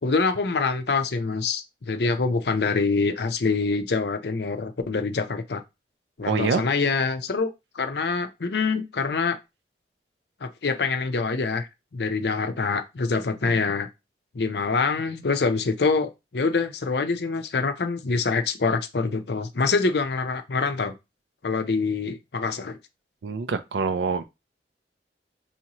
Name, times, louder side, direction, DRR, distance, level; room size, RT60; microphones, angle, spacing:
voice 1, 0.0-5.6 6.2-9.4 10.4-13.9 14.3-20.9 21.4-22.8, left 4 dB, 70° left, 0.6 m, -25 dB
voice 2, 6.3-6.6 23.2-24.2, right 5 dB, 85° right, 0.5 m, -25 dB
5.6 x 2.7 x 2.9 m
head